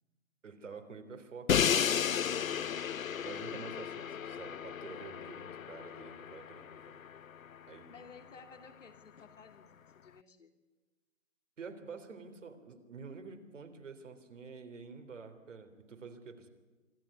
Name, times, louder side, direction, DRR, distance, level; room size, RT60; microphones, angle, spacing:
voice 1, 0.4-2.8 3.2-7.0 7.6-8.1 11.6-16.5, right 5 dB, 65° right, 6 dB, 3.5 m, -49 dB
Crash cymbal, 1.5-7.5, left 8 dB, 85° left, 0.7 m, -33 dB
voice 2, 7.9-10.5, left 5 dB, 70° left, 5 dB, 3.1 m, -55 dB
25.0 x 13.5 x 9.9 m, 1.2 s
figure-of-eight pair, 145°, 40 cm